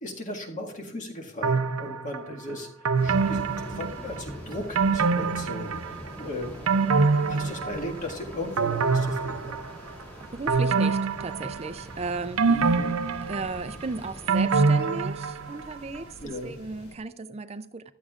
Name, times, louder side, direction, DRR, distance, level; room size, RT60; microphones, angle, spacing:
voice 1, 0.0-6.5 7.2-9.6 12.5-12.9 16.2-16.5, left 1 dB, 35° left, 1.9 m, -37 dB
sound 1, 1.4-2.2 2.8-4.3 4.8-6.1 6.4-8.1 8.6-9.9 10.5-11.9 12.4-15.6 16.0-16.1, right 4 dB, 75° right, 0.6 m, -25 dB
sound 2, 2.9-17.0, left 1 dB, 80° left, 2.7 m, -50 dB
sound 3, 3.0-14.4, equal, 10° left, 2.3 m, -43 dB
voice 2, 10.3-12.9 13.2-17.9, right 3 dB, 30° right, 0.4 m, -36 dB
15.0 x 12.5 x 2.5 m
head